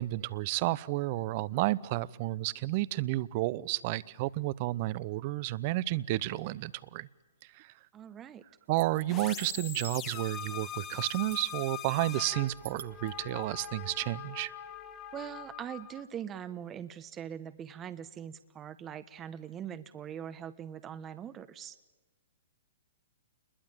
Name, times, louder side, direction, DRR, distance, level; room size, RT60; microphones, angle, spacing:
voice 1, 0.0-7.1 7.5-7.7 8.7-14.5, right 18 dB, 45° right, 19 dB, 0.9 m, -31 dB
voice 2, 7.9-8.4 15.1-21.8, right 9 dB, 25° right, 12 dB, 1.1 m, -42 dB
sound 1, 8.8-10.5 10.8-11.7 12.1-13.7, right 9 dB, 70° right, 1.3 m, -49 dB
sound 2, 9.1-16.0, left 10 dB, 30° left, 1.8 m, -42 dB
29.5 x 21.5 x 9.0 m, 1.2 s
hypercardioid pair, 125°, 0 cm